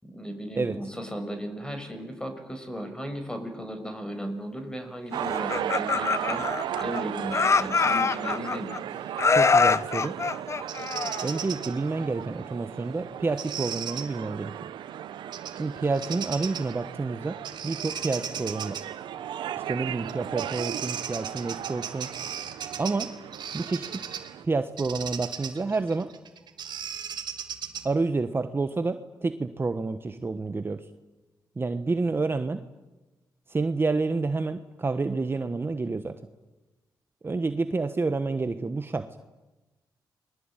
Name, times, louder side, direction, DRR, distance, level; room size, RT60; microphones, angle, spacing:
voice 1, 0.0-6.5 6.8-8.8, equal, 10° left, 7 dB, 6.1 m, -36 dB
sound 1, 5.1-24.4, right 10 dB, 90° right, 0.9 m, -36 dB
Laughter, 5.3-7.0 7.3-8.8 9.2-11.4, left 4 dB, 40° left, 0.9 m, -24 dB
voice 2, 9.3-10.1 11.2-14.5 15.5-17.4 17.6-18.8 19.7-22.1 22.8-23.1 23.5-24.0 24.4-26.1 27.8-30.8 31.6-32.6 33.5-36.1 37.2-39.1, right 3 dB, 30° right, 9 dB, 1.2 m, -29 dB
Bird vocalization bird call bird song, 10.7-11.7 13.4-14.0 15.3-15.6 15.9-16.7 17.4-18.8 20.1-20.2 20.4-24.3 24.8-28.0, right 8 dB, 70° right, 2.6 m, -36 dB
29.5 x 21.5 x 9.1 m, 1.1 s
cardioid pair, 80°, 8 cm